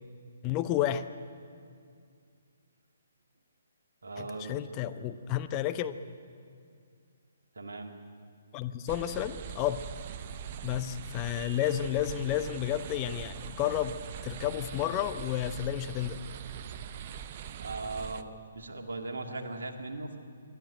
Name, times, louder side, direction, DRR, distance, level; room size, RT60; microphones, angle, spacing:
voice 1, 0.4-1.0 4.2-5.9 8.5-9.8 10.6-14.0 14.2-16.2, left 12 dB, 25° left, 10 dB, 0.6 m, -31 dB
voice 2, 4.0-4.6 7.6-7.9 17.6-18.2 18.6-20.2, right 2 dB, 65° right, 4 dB, 2.1 m, -38 dB
sound 1, 8.9-18.2, right 8 dB, 35° right, 0.7 m, -42 dB
24.5 x 12.0 x 9.0 m, 2.3 s
figure-of-eight pair, 130°, 0 cm